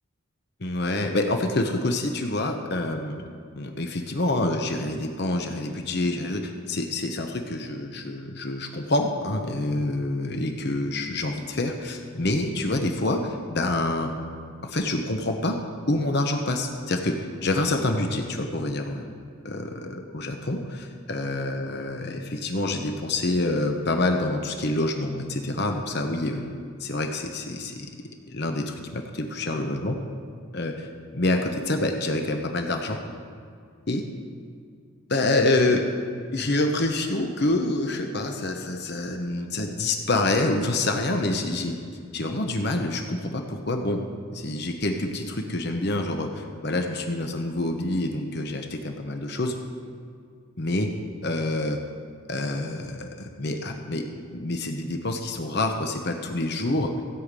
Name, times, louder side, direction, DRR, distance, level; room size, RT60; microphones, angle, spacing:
voice 1, 0.6-3.3 3.5-14.1 14.6-15.6 15.9-17.2 17.4-19.0 19.4-26.4 26.8-27.9 28.3-30.0 30.5-30.9 31.1-33.0 33.9-34.0 35.1-35.8 36.3-41.8 42.1-44.0 44.3-49.5 50.6-50.9 51.2-51.8 52.3-54.0 54.3-56.9, left 2 dB, 50° left, 4 dB, 0.9 m, -27 dB
16.5 x 5.7 x 8.2 m, 2.2 s
head